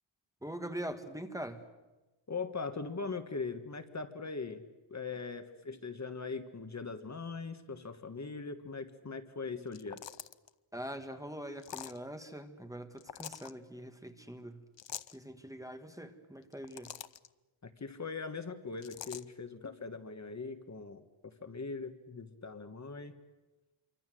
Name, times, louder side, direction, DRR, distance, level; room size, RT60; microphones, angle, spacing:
voice 1, 0.4-1.6 10.7-14.6 15.1-16.9, right 1 dB, 5° right, 7 dB, 1.6 m, -43 dB
voice 2, 2.3-4.6 4.9-10.0 17.6-23.1, left 4 dB, 35° left, 9 dB, 1.5 m, -41 dB
sound 1, 9.7-10.5 11.6-12.0 13.0-13.5 14.8-15.2 16.4-17.3 18.8-19.2, left 10 dB, 65° left, 0.8 m, -45 dB
27.5 x 24.5 x 7.7 m, 1.1 s
wide cardioid pair, 160°, 48 cm